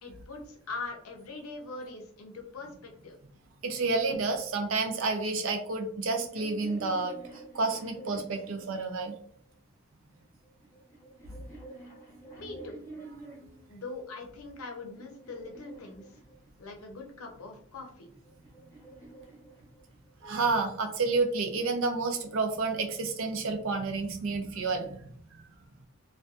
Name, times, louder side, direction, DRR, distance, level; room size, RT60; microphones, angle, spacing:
voice 1, 0.0-3.2 12.3-12.8 13.7-16.1 16.6-18.1, left 3 dB, 80° left, 2 dB, 0.6 m, -42 dB
voice 2, 3.6-7.2 7.5-9.1 20.2-25.0 25.3-25.4, right 3 dB, 65° right, 5 dB, 0.5 m, -30 dB
sound 1, 6.0-9.4 10.3-13.7 14.4-16.8 17.8-20.2, right 3 dB, 10° left, 0.9 m, -49 dB
2.6 x 2.2 x 2.3 m, 0.62 s
head